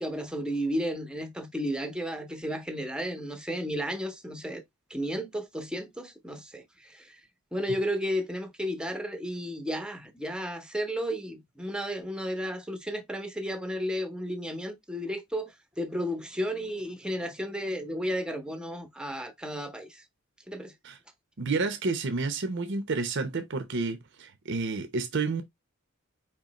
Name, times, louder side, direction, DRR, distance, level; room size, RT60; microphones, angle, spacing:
voice 1, 0.0-4.6 4.9-7.2 7.5-20.0 20.5-20.7, equal, 5° right, 0.8 m, -33 dB
voice 2, 21.4-25.4, right 4 dB, 55° right, 0.8 m, -30 dB
4.8 x 3.8 x 2.9 m
head